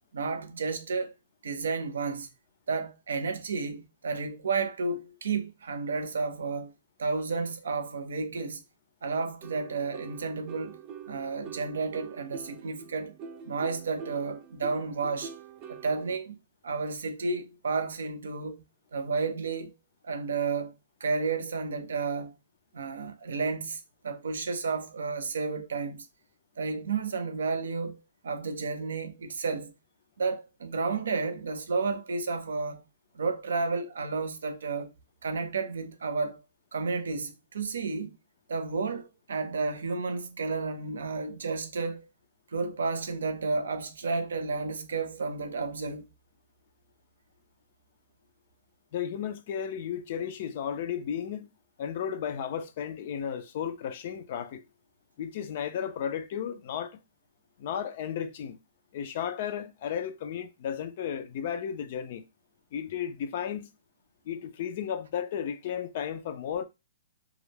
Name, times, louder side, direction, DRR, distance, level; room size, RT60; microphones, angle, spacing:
voice 1, 0.1-1.1 1.4-2.3 2.7-6.7 7.0-8.6 9.0-10.8 11.1-13.2 13.5-15.3 15.7-16.4 16.6-18.6 18.9-19.7 20.0-20.8 21.0-22.3 22.7-26.1 26.6-29.7 30.2-32.8 33.1-34.9 35.2-36.4 36.7-38.1 38.5-42.1 42.5-46.0, right 4 dB, 85° right, 0.5 m, -32 dB
sound 1, 9.4-16.2, right 6 dB, 30° right, 0.5 m, -45 dB
voice 2, 48.9-51.5 51.8-54.6 55.2-57.0 57.6-58.6 58.9-62.2 62.7-63.7 64.3-66.6, left 8 dB, 50° left, 0.4 m, -34 dB
2.3 x 2.0 x 3.2 m
hypercardioid pair, 145°, 0 cm